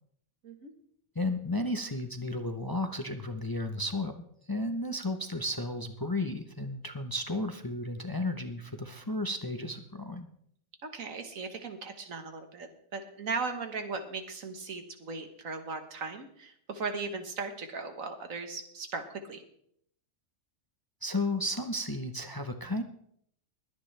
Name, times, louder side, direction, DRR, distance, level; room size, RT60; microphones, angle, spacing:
voice 1, 1.1-10.3 21.0-22.8, left 1 dB, 20° left, 6 dB, 0.7 m, -33 dB
voice 2, 10.8-19.4, right 4 dB, 85° right, 6 dB, 1.8 m, -38 dB
21.5 x 9.4 x 3.3 m, 0.69 s
omnidirectional pair, 1.4 m